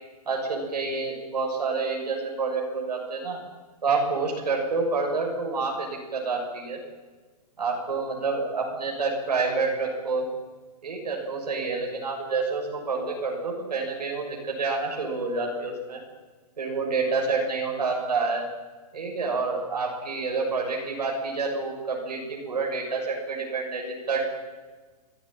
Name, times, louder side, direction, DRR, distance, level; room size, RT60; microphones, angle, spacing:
voice 1, 0.2-3.4 3.8-6.8 7.6-10.3 10.8-16.0 16.6-18.5 18.9-24.2, right 4 dB, 90° right, 0 dB, 6.7 m, -28 dB
25.5 x 16.5 x 9.1 m, 1.3 s
hypercardioid pair, 145°, 20 cm